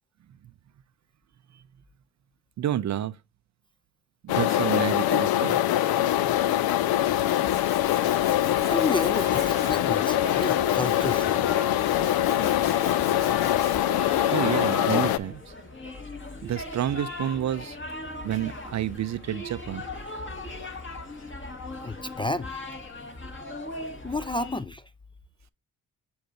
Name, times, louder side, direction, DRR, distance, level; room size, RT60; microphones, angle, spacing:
voice 1, 2.6-3.2 4.2-5.6 14.0-15.5 16.4-17.8 18.2-19.8, right 11 dB, 50° right, 0.5 m, -29 dB
sound 1, 4.3-15.2, left 13 dB, 80° left, 0.5 m, -23 dB
Tools, 6.5-14.0, left 2 dB, 50° left, 3.5 m, -44 dB
voice 2, 8.6-11.4 21.8-22.5 24.0-24.8, left 2 dB, 15° left, 0.3 m, -31 dB
sound 2, 9.2-24.6, left 2 dB, 30° left, 1.7 m, -38 dB
7.7 x 2.6 x 5.1 m
supercardioid pair, 50°, 36 cm